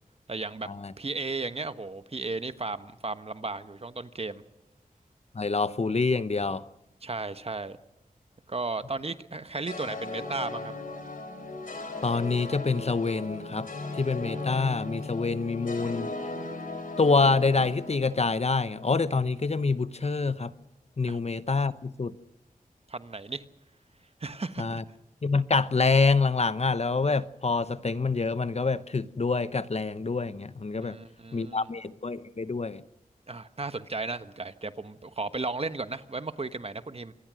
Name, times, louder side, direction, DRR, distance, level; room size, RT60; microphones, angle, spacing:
voice 1, 0.3-0.7 1.0-4.4 7.0-7.8 8.5-10.7 21.0-21.2 22.9-23.4 24.2-24.8 30.8-31.7 33.3-37.1, right 3 dB, 45° right, 1.2 m, -35 dB
voice 2, 5.3-6.6 12.0-13.7 14.0-16.1 17.0-20.5 21.0-22.1 24.6-24.8 25.2-31.0 31.3-32.8, left 4 dB, 50° left, 0.8 m, -26 dB
sound 1, 9.7-19.0, left 2 dB, 70° left, 4.1 m, -37 dB
26.0 x 20.0 x 6.3 m
wide cardioid pair, 55°, 15 cm